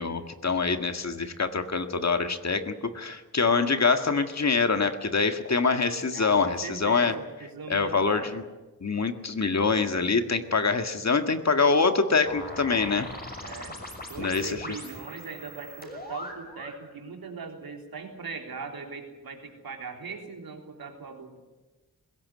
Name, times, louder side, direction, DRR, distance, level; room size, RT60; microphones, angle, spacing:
voice 1, 0.0-7.1 7.7-8.4 8.8-13.1 14.2-14.6, left 4 dB, 50° left, 8 dB, 1.9 m, -25 dB
voice 2, 6.1-8.4 13.4-13.8 14.1-21.4, right 4 dB, 90° right, 3 dB, 3.7 m, -40 dB
sound 1, 12.2-16.8, left 1 dB, 25° left, 6.1 m, -41 dB
21.0 x 17.0 x 9.6 m, 1.2 s
wide cardioid pair, 75°, 35 cm